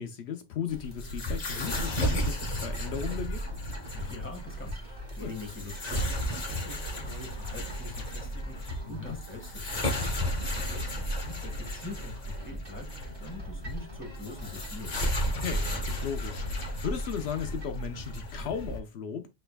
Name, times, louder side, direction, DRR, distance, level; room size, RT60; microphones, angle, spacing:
voice 1, 0.0-3.4 5.2-5.3 8.8-9.2 15.4-19.3, left 8 dB, 80° left, 0.9 m, -36 dB
sound 1, 0.7-18.8, equal, 40° left, 1.1 m, -34 dB
sound 2, 2.0-17.8, equal, 55° right, 1.8 m, -47 dB
voice 2, 3.9-10.0 10.4-15.0, left 3 dB, 10° left, 1.6 m, -44 dB
6.6 x 3.3 x 2.3 m
omnidirectional pair, 1.1 m